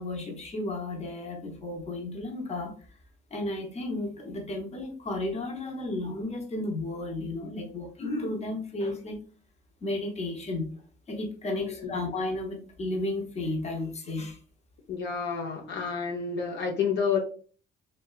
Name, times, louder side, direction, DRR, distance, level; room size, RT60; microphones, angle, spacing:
voice 1, 0.0-2.7 3.3-9.2 9.8-10.7 11.1-14.4, left 2 dB, 35° left, 2 dB, 0.7 m, -33 dB
voice 2, 11.5-12.0 14.9-17.2, left 6 dB, 65° left, 1 dB, 0.5 m, -30 dB
2.6 x 2.2 x 2.3 m, 0.41 s
cardioid pair, 90°, 20 cm